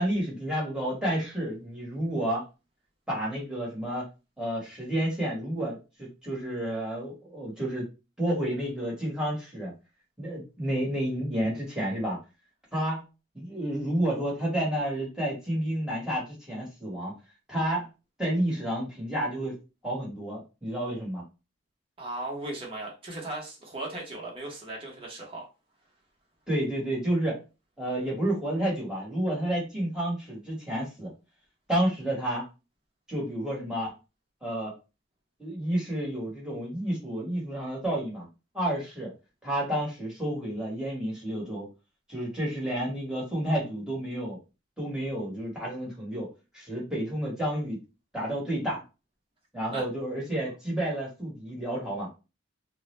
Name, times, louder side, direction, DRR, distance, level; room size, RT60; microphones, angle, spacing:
voice 1, 0.0-2.4 3.1-4.1 4.4-7.9 8.2-9.7 10.2-12.2 12.7-13.0 13.3-17.2 17.5-17.9 18.2-19.6 19.8-21.2 26.5-27.4 27.8-31.1 31.7-32.5 33.1-33.9 34.4-34.7 35.4-38.3 38.5-39.1 39.4-41.7 42.1-44.4 44.8-47.8 48.1-48.8 49.5-52.1, right 1 dB, 5° right, -5 dB, 1.1 m, -30 dB
voice 2, 22.0-25.5 49.7-49.8, right 2 dB, 25° right, -2 dB, 0.9 m, -37 dB
2.3 x 2.1 x 3.0 m, 0.29 s
head